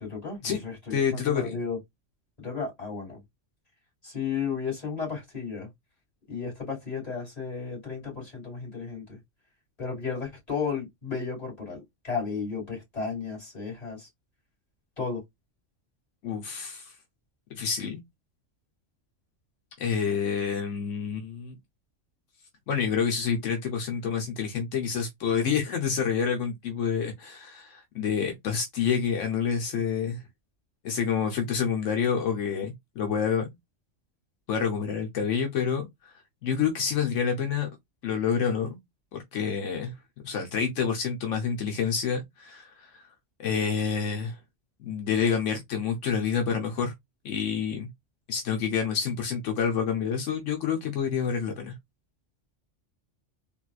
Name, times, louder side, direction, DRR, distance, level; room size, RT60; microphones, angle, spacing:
voice 1, 0.0-1.8 2.4-3.2 4.0-5.7 6.3-9.2 9.8-14.1 15.0-15.2, left 5 dB, 30° left, 2.7 m, -33 dB
voice 2, 0.9-1.6 16.2-16.9 17.5-18.0 19.8-21.6 22.7-30.2 30.8-33.5 34.5-36.1 36.4-37.7 38.0-38.8 39.1-39.9 40.2-43.0 43.4-44.4 44.8-46.9 47.2-47.9 48.3-51.7, left 7 dB, 85° left, 1.2 m, -28 dB
3.9 x 2.6 x 2.3 m
omnidirectional pair, 1.3 m